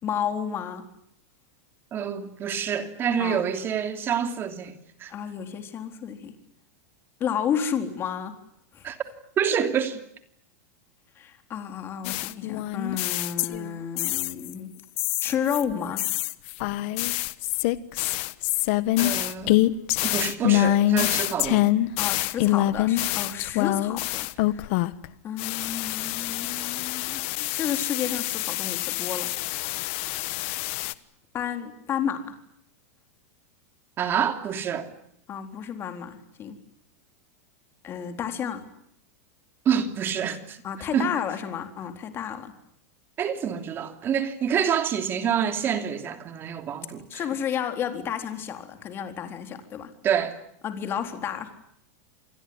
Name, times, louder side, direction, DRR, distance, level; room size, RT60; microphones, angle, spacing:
voice 1, 0.0-0.9 3.2-3.4 5.1-6.3 7.2-8.3 8.7-8.9 11.2-14.7 15.2-16.1 22.0-24.7 25.2-29.3 31.3-32.3 35.3-36.6 37.8-38.7 40.6-42.5 47.1-49.9 50.6-51.5, left 8 dB, 25° left, 4.0 m, -31 dB
voice 2, 1.9-5.1 8.8-9.0 9.4-10.0 19.0-19.6 20.0-21.6 34.0-34.9 39.6-40.6 40.9-41.1 43.2-47.3 50.0-50.4, right 8 dB, 25° right, 2.9 m, -27 dB
sound 1, 12.0-14.5 15.0-25.1 25.4-30.9, left 16 dB, 55° left, 1.3 m, -26 dB
27.5 x 20.5 x 9.8 m
supercardioid pair, 145°, 8 cm